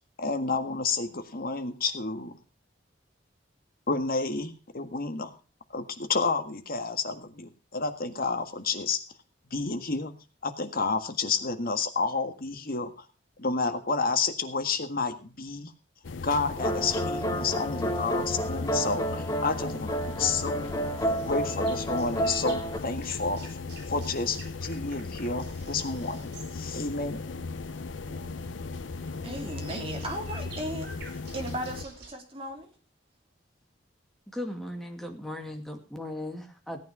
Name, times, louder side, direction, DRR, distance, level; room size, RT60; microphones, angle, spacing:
voice 1, 0.2-2.4 3.9-5.3 5.7-9.0 9.5-10.1 10.4-13.1 13.4-15.7 16.2-20.8 21.2-23.6 23.9-27.4, left 4 dB, 55° left, 1.7 m, -30 dB
sound 1, 16.0-31.9, left 4 dB, 90° left, 0.6 m, -37 dB
sound 2, 16.6-22.8, right 1 dB, 20° left, 1.2 m, -30 dB
sound 3, 19.7-32.1, right 2 dB, 60° right, 4.9 m, -49 dB
voice 2, 29.2-32.7, right 1 dB, 30° right, 3.3 m, -36 dB
voice 3, 34.3-36.8, left 1 dB, ahead, 2.3 m, -37 dB
17.0 x 9.2 x 4.8 m
head